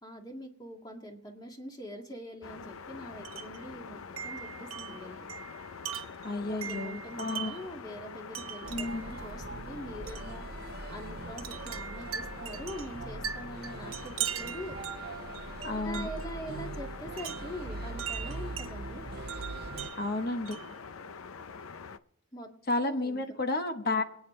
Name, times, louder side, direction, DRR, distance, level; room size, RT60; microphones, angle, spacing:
voice 1, 0.0-5.2 6.3-14.8 15.7-19.1 22.3-22.5 22.8-23.2, equal, 20° left, 2 dB, 1.9 m, -44 dB
sound 1, 2.4-22.0, left 5 dB, 85° left, 0.6 m, -45 dB
Wind chime, 3.2-3.6 4.2-7.7 8.3-9.2 10.1-10.3 11.4-16.3 17.2-18.7 19.3-20.8, right 9 dB, 85° right, 1.1 m, -40 dB
voice 2, 6.2-7.6 8.7-9.1 15.6-16.1 20.0-20.6 22.7-24.0, left 2 dB, 45° left, 7 dB, 1.1 m, -31 dB
sound 2, 8.6-19.9, right 3 dB, 45° right, 0.6 m, -42 dB
26.5 x 9.5 x 3.2 m, 0.75 s
head